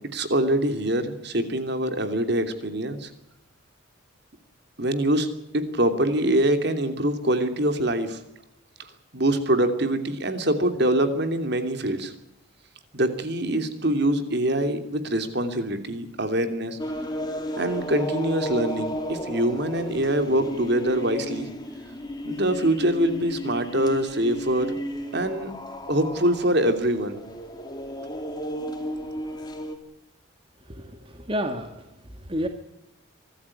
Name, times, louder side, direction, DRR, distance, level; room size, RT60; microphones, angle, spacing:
voice 1, 0.1-3.1 4.8-5.3 5.5-8.2 9.1-12.1 12.9-16.8 17.5-21.5 22.2-24.7 25.1-25.5 25.9-27.1, right 1 dB, 50° right, 8 dB, 2.9 m, -24 dB
sound 1, 16.8-29.8, equal, 20° left, 2.8 m, -34 dB
voice 2, 30.7-32.5, equal, 25° right, 5 dB, 1.8 m, -31 dB
24.5 x 14.0 x 9.7 m, 0.89 s
head